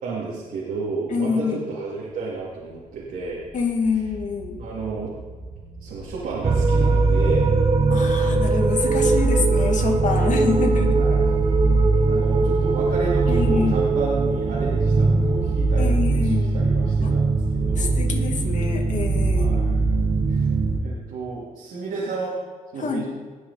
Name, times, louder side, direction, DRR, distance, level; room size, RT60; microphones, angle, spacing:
voice 1, 0.0-3.4 4.6-5.1 5.8-7.5 10.4-10.6 10.9-11.2 12.1-18.0 19.3-20.5 20.8-22.3 22.7-23.0, right 3 dB, 85° right, -7 dB, 2.6 m, -32 dB
voice 2, 1.1-1.6 3.5-4.6 7.9-11.0 13.3-13.9 15.8-16.6 17.0-17.1 17.8-19.5 22.8-23.0, left 5 dB, 60° left, 2 dB, 2.2 m, -26 dB
sound 1, 2.5-18.1, right 2 dB, 70° right, 1.7 m, -42 dB
sound 2, 6.4-20.8, right 3 dB, 40° right, 1.2 m, -20 dB
19.0 x 6.4 x 4.2 m, 1.5 s
cardioid pair, 75°, 14 cm